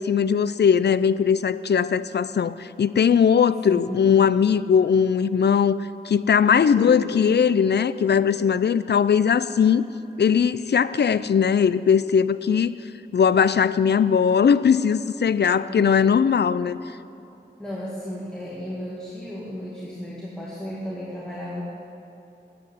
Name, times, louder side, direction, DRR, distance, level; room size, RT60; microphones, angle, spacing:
voice 1, 0.0-9.9 10.2-12.7 13.1-16.8, left 7 dB, 65° left, 16 dB, 0.4 m, -19 dB
voice 2, 3.7-4.1 6.5-7.2 15.6-16.2 17.6-21.6, equal, 5° left, -7 dB, 2.1 m, -35 dB
9.3 x 8.6 x 9.8 m, 2.8 s
wide cardioid pair, 70°, 19 cm